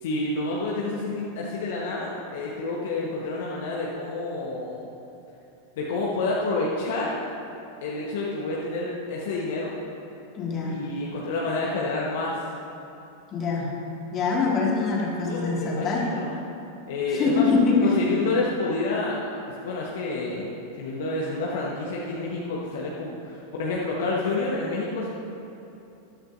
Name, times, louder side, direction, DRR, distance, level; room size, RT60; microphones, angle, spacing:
voice 1, 0.0-4.9 5.8-7.2 7.8-9.7 10.6-12.3 15.2-16.4 16.9-17.4 17.8-19.2 19.5-20.5 20.8-25.1, left 3 dB, 55° left, -4 dB, 1.3 m, -29 dB
voice 2, 10.3-10.8 13.3-13.7 14.1-16.0 17.1-18.0, left 4 dB, 30° left, -3 dB, 2.2 m, -24 dB
13.5 x 12.0 x 2.7 m, 2.9 s
figure-of-eight pair, 90°, 0 cm